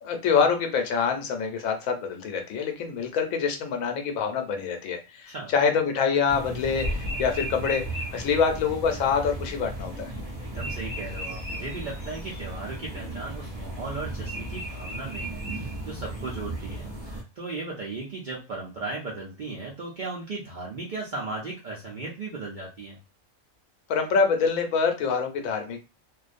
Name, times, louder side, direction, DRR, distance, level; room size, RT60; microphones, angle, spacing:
voice 1, 0.0-10.1 23.9-25.8, left 6 dB, 80° left, 5 dB, 1.0 m, -25 dB
sound 1, 6.3-17.2, right 1 dB, 30° right, 0.8 m, -35 dB
voice 2, 10.5-23.0, right 3 dB, 60° right, -4 dB, 0.5 m, -36 dB
2.4 x 2.1 x 2.4 m, 0.30 s
omnidirectional pair, 1.4 m